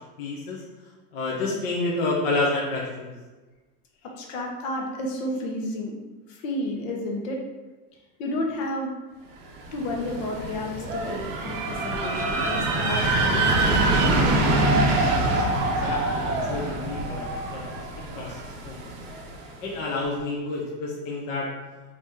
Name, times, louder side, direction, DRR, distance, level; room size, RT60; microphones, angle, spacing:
voice 1, 0.2-0.6 1.1-3.1 15.8-17.6 18.1-18.4 18.6-18.9 19.6-21.5, left 2 dB, 30° left, -5 dB, 0.5 m, -29 dB
voice 2, 4.0-6.0 6.3-7.4 8.2-8.9 9.7-14.7, left 1 dB, 50° left, 1 dB, 0.9 m, -31 dB
sound 1, 9.6-19.4, right 2 dB, 45° right, 0.7 m, -25 dB
4.8 x 2.8 x 3.6 m, 1.2 s
supercardioid pair, 175°, 49 cm